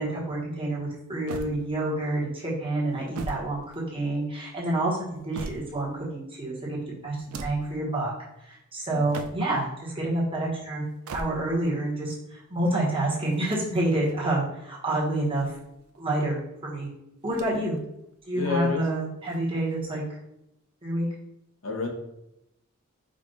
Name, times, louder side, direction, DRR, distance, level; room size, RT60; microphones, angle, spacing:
voice 1, 0.0-3.6 3.9-8.1 8.4-10.8 11.1-15.6 16.0-16.9 17.2-17.8 18.3-20.0 20.8-21.1, right 1 dB, 25° right, -5 dB, 1.3 m, -28 dB
sound 1, 1.3-2.1 2.9-4.3 4.9-6.0 7.1-7.8 8.9-9.7 10.8-11.7 13.2-14.2 15.1-16.0 17.2-17.8 18.1-18.2 19.2-20.0, right 2 dB, 85° right, 0.4 m, -41 dB
voice 2, 18.3-18.8 21.6-21.9, left 4 dB, 70° left, 1 dB, 0.9 m, -29 dB
5.1 x 2.5 x 4.0 m, 0.85 s
head